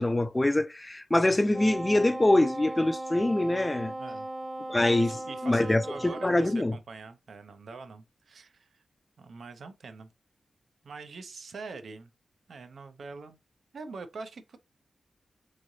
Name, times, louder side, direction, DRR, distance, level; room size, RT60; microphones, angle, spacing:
voice 1, 0.0-3.9 4.7-5.2 5.4-6.7, left 1 dB, 20° left, 0.4 m, -24 dB
Wind instrument woodwind instrument, 1.5-6.6, right 1 dB, 40° right, 1.3 m, -38 dB
voice 2, 5.0-8.8 9.2-10.1 10.8-12.1 12.5-13.4 13.7-14.6, right 4 dB, 70° right, 0.6 m, -44 dB
3.6 x 3.1 x 2.6 m
wide cardioid pair, 100°, 0 cm